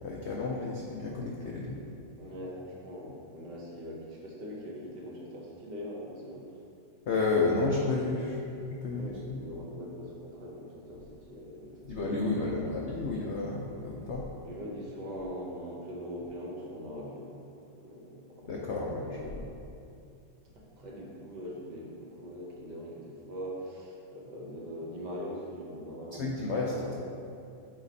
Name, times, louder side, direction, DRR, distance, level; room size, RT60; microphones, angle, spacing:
voice 1, 0.0-1.8 7.1-8.4 8.7-9.4 11.9-14.2 18.5-19.4 26.2-26.7, left 3 dB, 75° left, -3 dB, 0.6 m, -31 dB
voice 2, 2.2-6.4 8.9-12.9 14.4-17.3 17.7-19.5 20.5-26.3 26.7-26.9, equal, 70° right, -3 dB, 1.7 m, -42 dB
5.9 x 4.9 x 4.0 m, 2.5 s
omnidirectional pair, 1.9 m